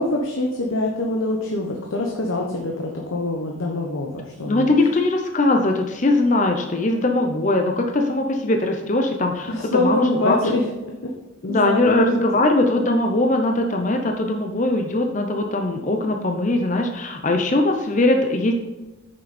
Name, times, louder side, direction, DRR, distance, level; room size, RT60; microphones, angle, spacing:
voice 1, 0.0-4.7 9.5-10.6 11.0-11.1 11.4-12.3, left 2 dB, 80° left, 0 dB, 1.1 m, -24 dB
voice 2, 4.5-10.4 11.4-18.5, left 2 dB, 35° left, 4 dB, 0.7 m, -20 dB
8.6 x 6.8 x 4.2 m, 1.1 s
head